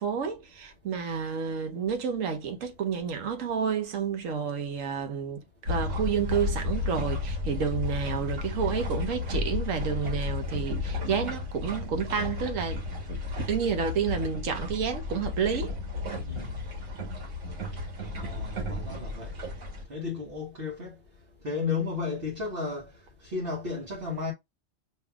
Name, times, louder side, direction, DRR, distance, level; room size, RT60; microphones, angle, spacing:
voice 1, 0.0-12.8 13.1-13.2 13.5-15.7, right 7 dB, 85° right, 1.2 m, -30 dB
sound 1, 5.7-19.8, left 3 dB, 70° right, 1.5 m, -33 dB
voice 2, 18.0-19.3 19.9-20.9 21.4-22.9 23.2-24.3, left 4 dB, 50° right, 1.1 m, -33 dB
5.5 x 2.7 x 2.3 m
omnidirectional pair, 1.3 m